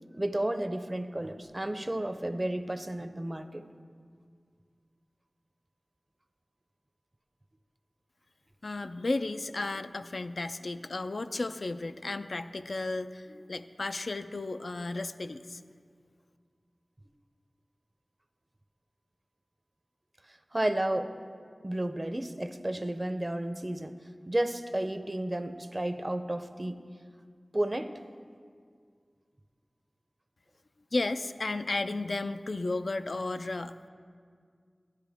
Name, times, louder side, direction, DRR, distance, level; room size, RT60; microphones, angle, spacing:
voice 1, 0.1-3.6 20.5-21.2 21.6-23.9 24.3-26.8 27.5-28.0, right 1 dB, 35° right, 10 dB, 0.5 m, -32 dB
voice 2, 8.6-15.6 30.9-33.8, left 2 dB, 80° left, 9 dB, 0.3 m, -33 dB
12.0 x 11.0 x 3.5 m, 2.1 s
wide cardioid pair, 40°, 0 cm